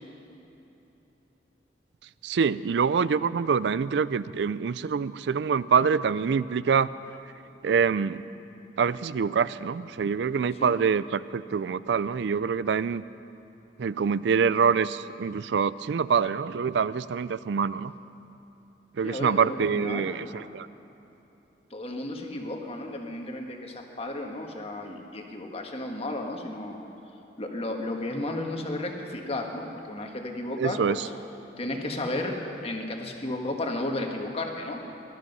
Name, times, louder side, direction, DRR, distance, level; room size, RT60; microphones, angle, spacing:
voice 1, 2.2-6.9 7.6-8.2 8.8-13.0 13.8-17.9 19.0-20.7 30.6-31.0, right 6 dB, 75° right, 17 dB, 0.4 m, -25 dB
voice 2, 19.0-20.1 21.7-26.9 27.4-31.1 31.6-32.4 32.6-34.8, left 2 dB, 35° left, 2 dB, 1.5 m, -33 dB
19.0 x 13.0 x 5.5 m, 3.0 s
head